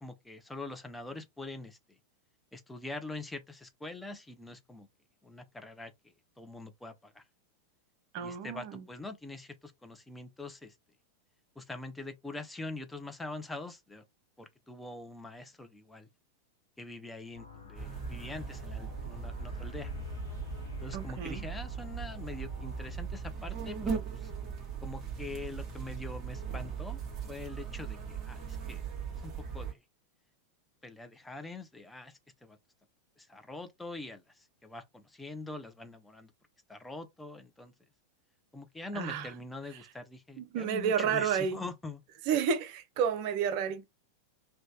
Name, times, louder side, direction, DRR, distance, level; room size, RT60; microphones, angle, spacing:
voice 1, 0.0-2.0 2.5-4.9 5.2-7.2 8.2-10.7 11.6-14.0 14.4-16.1 16.8-19.9 20.8-24.3 24.8-27.0 27.3-28.8 29.2-29.8 30.8-32.6 33.2-36.3 36.7-37.7 38.5-42.0, left 2 dB, 5° left, 0.5 m, -44 dB
voice 2, 8.1-8.8 20.9-21.4 38.9-39.3 40.4-41.6 42.3-43.9, right 7 dB, 45° right, 0.4 m, -31 dB
sound 1, 17.3-22.9, left 5 dB, 70° left, 0.9 m, -50 dB
sound 2, 17.7-29.7, right 6 dB, 30° right, 1.0 m, -39 dB
3.0 x 2.1 x 2.7 m
figure-of-eight pair, 90°, 0 cm